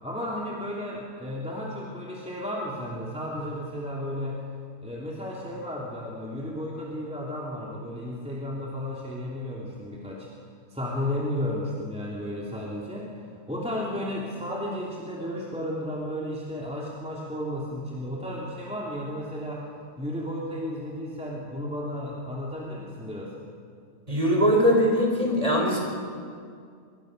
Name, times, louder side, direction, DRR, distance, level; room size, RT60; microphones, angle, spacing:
voice 1, 0.0-4.4 4.8-10.3 10.7-13.1 13.5-19.6 20.0-23.3, left 1 dB, 5° right, -4 dB, 3.1 m, -33 dB
voice 2, 24.1-25.8, equal, 20° right, 0 dB, 5.0 m, -21 dB
25.5 x 23.0 x 6.7 m, 2.2 s
omnidirectional pair, 1.6 m